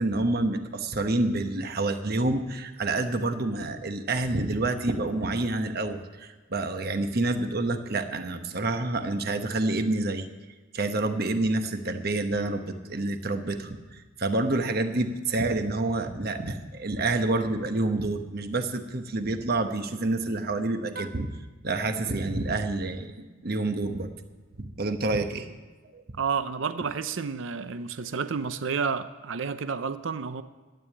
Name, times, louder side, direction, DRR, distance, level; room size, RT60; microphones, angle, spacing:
voice 1, 0.0-10.3 10.7-21.3 21.6-24.1 24.6-25.5 25.9-26.0, right 2 dB, 50° right, 7 dB, 1.1 m, -28 dB
voice 2, 26.2-30.4, right 5 dB, 65° right, 11 dB, 0.6 m, -30 dB
12.0 x 9.2 x 9.7 m, 1.3 s
head